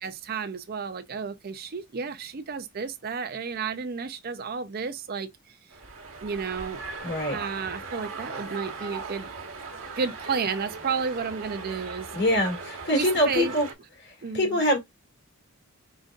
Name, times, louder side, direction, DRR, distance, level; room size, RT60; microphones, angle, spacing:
voice 1, 0.0-5.6 6.2-6.8 7.3-9.3 10.0-12.1 12.9-13.5 14.2-14.6, right 5 dB, 45° right, 0.5 m, -32 dB
sound 1, 5.7-13.7, right 4 dB, 60° right, 1.3 m, -39 dB
voice 2, 7.0-7.4 12.1-13.7 14.3-14.8, left 1 dB, 50° left, 2.4 m, -24 dB
5.1 x 3.9 x 2.4 m
head